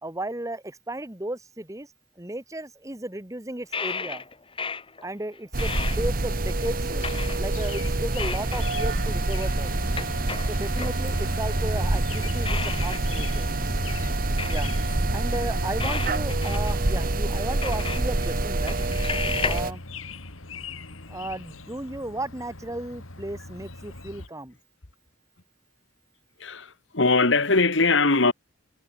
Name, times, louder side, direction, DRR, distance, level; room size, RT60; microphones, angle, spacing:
voice 1, 0.0-1.9 2.2-4.2 5.0-7.0 7.4-9.7 10.5-13.5 13.8-14.0 14.5-14.7 15.1-18.8 19.4-19.8 21.1-24.6, right 1 dB, 15° right, 1.4 m, -34 dB
sound 1, 3.7-5.1 5.3-6.5 7.0-7.6 8.2-8.7 9.1-9.2 9.8-10.9 11.9-12.0 12.5-13.1 13.5-13.6 14.4-15.0 15.8-17.1 17.5-18.3 18.7-19.6, left 5 dB, 25° left, 1.6 m, -33 dB
sound 2, 5.5-19.7, right 2 dB, 45° right, 1.2 m, -26 dB
sound 3, 6.8-24.3, left 3 dB, 80° left, 3.6 m, -41 dB
voice 2, 26.4-28.3, left 3 dB, 65° left, 2.0 m, -21 dB
head